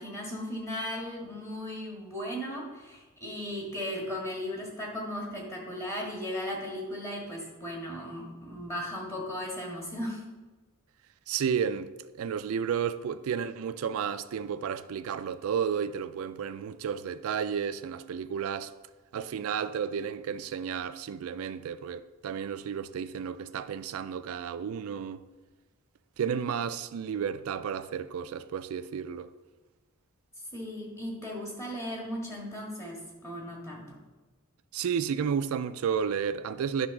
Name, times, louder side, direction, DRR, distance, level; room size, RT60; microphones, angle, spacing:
voice 1, 0.0-10.2 30.5-34.0, left 1 dB, 15° left, 1.8 m, -36 dB
voice 2, 11.3-11.9 12.2-18.7 19.1-25.2 26.2-29.3 34.7-36.9, right 7 dB, 75° right, 0.3 m, -32 dB
9.8 x 3.4 x 5.9 m
head